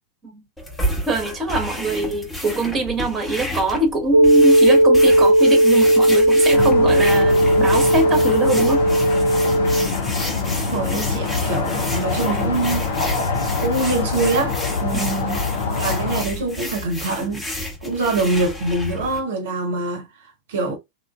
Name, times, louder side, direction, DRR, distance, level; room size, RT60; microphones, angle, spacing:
sound 1, 0.6-19.2, left 1 dB, 10° left, 1.0 m, -31 dB
voice 1, 1.1-8.8 14.9-15.2, right 2 dB, 20° right, 1.0 m, -23 dB
sound 2, 4.1-9.9, right 1 dB, 75° right, 0.3 m, -15 dB
sound 3, 6.5-16.2, left 4 dB, 60° left, 0.6 m, -24 dB
voice 2, 10.7-13.3 13.6-15.5 15.7-17.5 17.8-20.7, right 2 dB, 55° right, 0.7 m, -24 dB
3.1 x 2.4 x 2.2 m
figure-of-eight pair, 90°, 0 cm